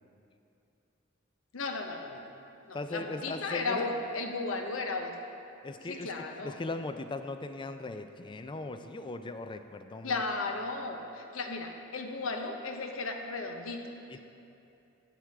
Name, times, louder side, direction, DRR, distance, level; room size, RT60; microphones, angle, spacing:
voice 1, 1.5-2.3 2.7-5.1 5.9-6.5 10.0-13.9, left 3 dB, 85° left, 4 dB, 0.9 m, -35 dB
voice 2, 2.7-3.9 5.6-10.2 14.1-14.2, left 2 dB, 25° left, 9 dB, 0.4 m, -38 dB
11.0 x 8.9 x 3.6 m, 2.7 s
head